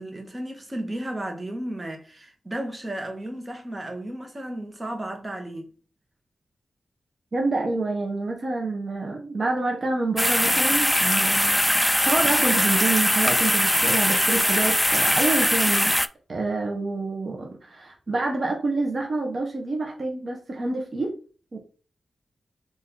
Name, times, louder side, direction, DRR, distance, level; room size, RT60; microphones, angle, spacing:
voice 1, 0.0-5.7, right 1 dB, 30° right, 1.4 m, -34 dB
voice 2, 7.3-15.9 16.3-21.2 21.5-21.6, right 3 dB, 55° right, 1.0 m, -27 dB
sound 1, 10.2-16.1, left 1 dB, 10° left, 0.3 m, -21 dB
4.4 x 2.9 x 3.9 m
cardioid pair, 50°, 0 cm